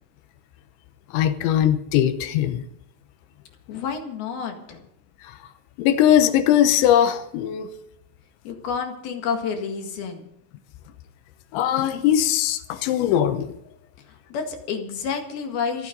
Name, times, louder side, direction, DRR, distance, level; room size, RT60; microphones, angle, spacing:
voice 1, 1.1-2.6 5.8-7.7 11.5-13.6, left 10 dB, 90° left, 9 dB, 3.3 m, -20 dB
voice 2, 3.7-4.8 8.5-10.3 14.1-15.9, left 6 dB, 60° left, 4 dB, 3.5 m, -29 dB
27.5 x 9.7 x 3.9 m, 0.76 s
omnidirectional pair, 5.1 m